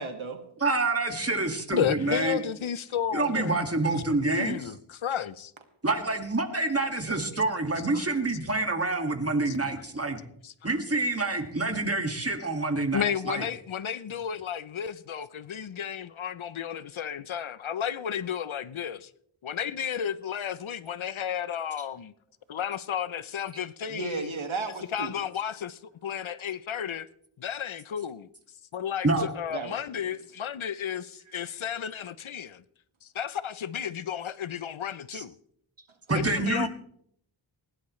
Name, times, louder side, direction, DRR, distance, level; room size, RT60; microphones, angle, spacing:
voice 1, 0.0-0.4 23.9-25.1 29.2-29.3 29.5-30.0, right 3 dB, 75° right, 1.9 m, -34 dB
voice 2, 0.6-2.4 3.1-4.6 5.8-10.2 10.6-13.4 29.0-29.2 35.1-35.2 36.1-36.7, right 2 dB, 30° right, 2.1 m, -27 dB
voice 3, 1.7-3.6 4.2-5.5 7.9-8.0 9.5-9.6 10.4-10.5 12.9-19.1 19.4-22.1 22.5-24.3 24.9-27.1 27.4-28.3 28.7-32.6 33.0-35.3 36.1-36.7, left 8 dB, 75° left, 0.7 m, -33 dB
20.0 x 16.5 x 3.2 m
wide cardioid pair, 60°, 48 cm